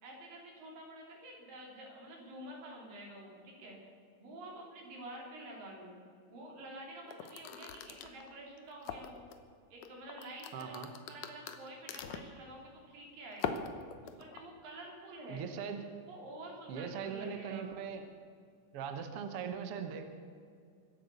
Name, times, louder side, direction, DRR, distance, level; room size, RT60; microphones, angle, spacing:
voice 1, 0.0-3.8 4.2-6.0 6.3-9.2 9.7-13.6 14.0-15.4 16.1-17.7, right 1 dB, 85° right, -1 dB, 4.9 m, -49 dB
sound 1, 7.1-9.4 9.8-12.4 13.3-14.4, left 7 dB, 70° left, 2.3 m, -41 dB
voice 2, 10.5-10.9 15.3-15.8 16.7-18.0 18.7-20.1, right 7 dB, 55° right, 7 dB, 1.7 m, -40 dB
24.0 x 8.4 x 6.8 m, 2.2 s
omnidirectional pair, 3.9 m